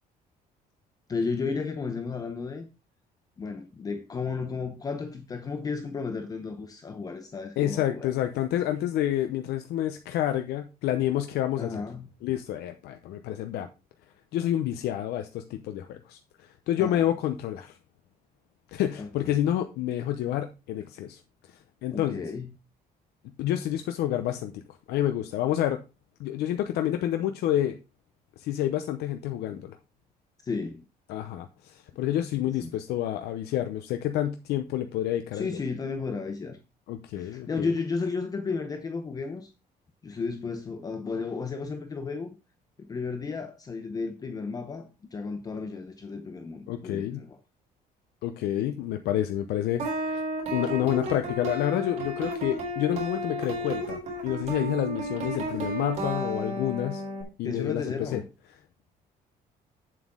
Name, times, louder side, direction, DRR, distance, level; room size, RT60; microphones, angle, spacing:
voice 1, 1.1-2.7 3.4-8.1 11.6-12.1 16.8-17.1 19.0-19.4 21.9-22.5 30.4-30.8 32.4-32.7 35.3-36.6 37.1-39.5 40.0-42.3 42.9-47.4 57.4-58.2, left 4 dB, 25° left, 0.8 m, -33 dB
voice 2, 7.6-11.8 12.2-13.7 14.3-17.8 18.7-21.2 21.5-22.2 23.4-24.6 24.9-25.8 26.2-27.8 28.4-29.8 31.1-35.5 36.9-37.7 46.7-47.2 48.2-50.2 50.5-57.0 57.4-58.2, left 12 dB, 90° left, 0.8 m, -29 dB
sound 1, 49.8-57.2, right 1 dB, 45° right, 3.7 m, -32 dB
8.3 x 7.6 x 3.7 m
cardioid pair, 175°, 16 cm